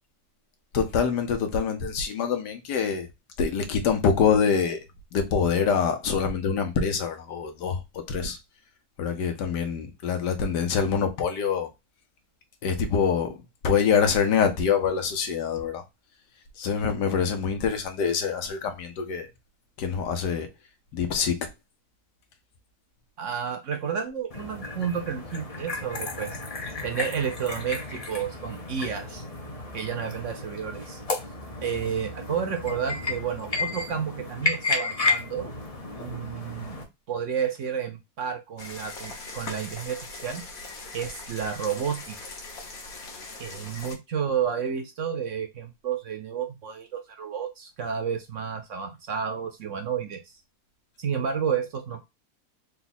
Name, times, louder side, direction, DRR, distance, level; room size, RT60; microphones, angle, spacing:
voice 1, 0.7-3.1 3.4-4.8 5.1-8.4 9.0-11.7 12.6-13.4 13.6-15.8 16.6-19.3 19.8-20.5 20.9-21.4, left 6 dB, 90° left, 1.5 m, -25 dB
voice 2, 23.2-26.4 26.8-29.2 29.7-31.0 31.6-35.5 36.0-36.8 37.1-40.4 40.9-42.1 43.4-50.4 51.0-52.1, right 7 dB, 65° right, 0.8 m, -31 dB
sound 1, 24.3-36.8, left 3 dB, 40° left, 0.5 m, -33 dB
sound 2, 38.6-43.9, left 3 dB, 60° left, 1.5 m, -40 dB
4.0 x 2.3 x 4.0 m
omnidirectional pair, 1.7 m